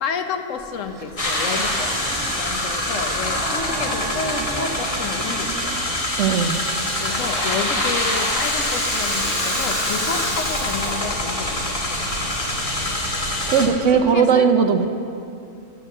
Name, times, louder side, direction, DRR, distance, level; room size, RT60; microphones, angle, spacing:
voice 1, 0.0-6.2 7.0-12.0 13.5-13.6 14.1-14.5, left 6 dB, 65° left, 7 dB, 1.1 m, -30 dB
sound 1, 0.6-8.6 9.2-9.3 10.1-10.2 13.7-14.1, right 2 dB, 80° right, 1.9 m, -35 dB
sound 2, 1.2-13.7, left 1 dB, 25° left, 1.2 m, -25 dB
Rattle (instrument), 5.4-11.2 11.5-11.6 12.0-12.5, equal, 85° left, 4.0 m, -31 dB
voice 2, 6.2-6.6 13.5-14.9, right 6 dB, 65° right, 6 dB, 0.9 m, -17 dB
10.0 x 7.7 x 7.5 m, 2.5 s
omnidirectional pair, 1.5 m